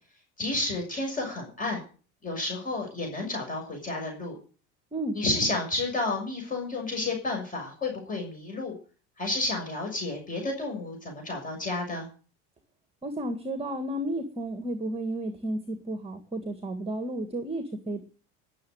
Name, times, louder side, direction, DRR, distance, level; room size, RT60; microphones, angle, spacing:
voice 1, 0.4-1.8 2.2-4.3 5.1-8.8 9.2-12.1, left 2 dB, 25° left, 1 dB, 6.5 m, -31 dB
voice 2, 13.0-18.0, right 1 dB, 15° right, 9 dB, 1.8 m, -32 dB
20.0 x 7.4 x 7.9 m, 0.40 s
cardioid pair, 135°, 35 cm